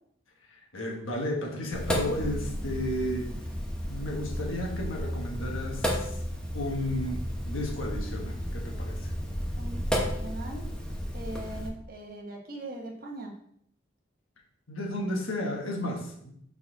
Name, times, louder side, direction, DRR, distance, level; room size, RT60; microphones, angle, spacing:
voice 1, 0.5-3.3 3.9-6.2 6.5-9.1 14.7-16.3, left 1 dB, 75° left, 1 dB, 1.4 m, -33 dB
Sink (filling or washing), 1.7-11.7, equal, 5° left, 0.8 m, -33 dB
Bass guitar, 2.0-11.7, left 2 dB, 45° left, 1.0 m, -51 dB
voice 2, 9.6-10.7 11.1-13.4, right 1 dB, 45° right, 1 dB, 1.1 m, -40 dB
6.3 x 4.1 x 3.9 m, 0.68 s
head